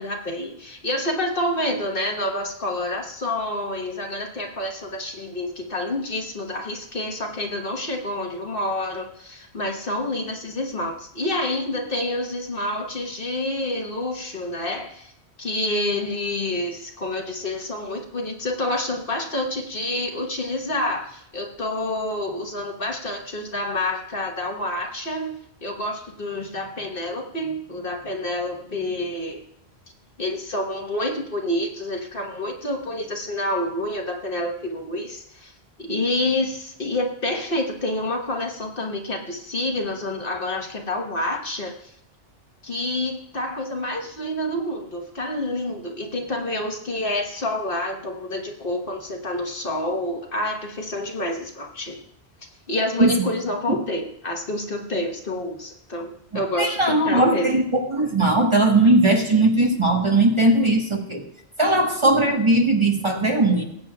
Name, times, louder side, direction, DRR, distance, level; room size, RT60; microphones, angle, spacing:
voice 1, 0.0-15.1 15.4-29.4 30.2-35.5 35.8-41.9 42.6-52.0 52.7-57.6, left 1 dB, 55° left, 2 dB, 1.6 m, -28 dB
voice 2, 56.6-61.2 61.6-63.6, right 2 dB, 25° right, 1 dB, 1.4 m, -19 dB
20.0 x 8.7 x 2.4 m, 0.73 s
omnidirectional pair, 1.1 m